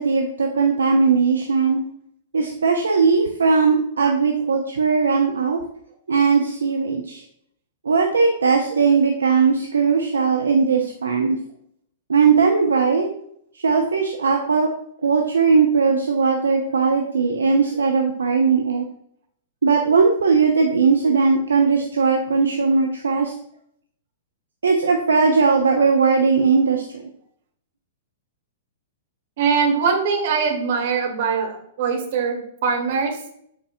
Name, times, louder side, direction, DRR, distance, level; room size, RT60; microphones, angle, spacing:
voice 1, 0.0-1.8 2.3-5.6 6.1-7.2 7.8-11.4 12.1-13.1 13.5-14.7 15.0-18.8 19.6-23.3 24.6-26.9, right 5 dB, 70° right, 2 dB, 0.7 m, -18 dB
voice 2, 29.4-33.2, right 5 dB, 50° right, 2 dB, 1.6 m, -22 dB
7.8 x 4.8 x 2.5 m, 0.69 s
figure-of-eight pair, 105°, 0 cm